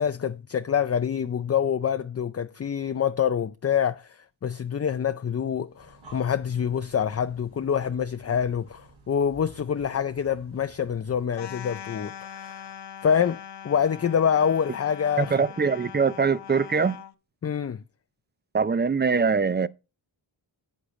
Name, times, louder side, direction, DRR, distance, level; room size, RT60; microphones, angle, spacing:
voice 1, 0.0-12.7 13.0-15.4 17.4-17.8, left 8 dB, 35° left, 0.4 m, -26 dB
Breathing, 5.6-11.4, right 3 dB, 85° right, 3.5 m, -53 dB
sound 1, 11.3-17.1, left 9 dB, 60° left, 0.9 m, -41 dB
voice 2, 15.2-17.0 18.5-19.7, right 5 dB, 25° right, 0.4 m, -23 dB
11.0 x 8.3 x 3.1 m
wide cardioid pair, 90°, 46 cm